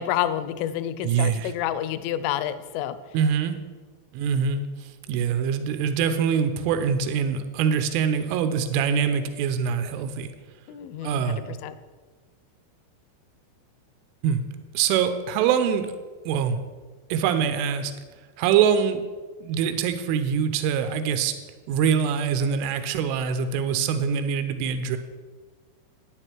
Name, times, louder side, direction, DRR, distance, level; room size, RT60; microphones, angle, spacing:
voice 1, 0.0-3.0 10.7-11.7, left 11 dB, 85° left, 13 dB, 3.0 m, -29 dB
voice 2, 1.0-1.5 3.1-3.6 4.1-10.3 11.0-11.6 14.2-14.4 14.7-15.9 16.3-16.6 17.1-17.9 18.4-19.0 19.4-21.3 21.7-25.0, right 7 dB, 85° right, 9 dB, 3.2 m, -24 dB
9.9 x 9.7 x 4.5 m, 1.4 s
omnidirectional pair, 5.6 m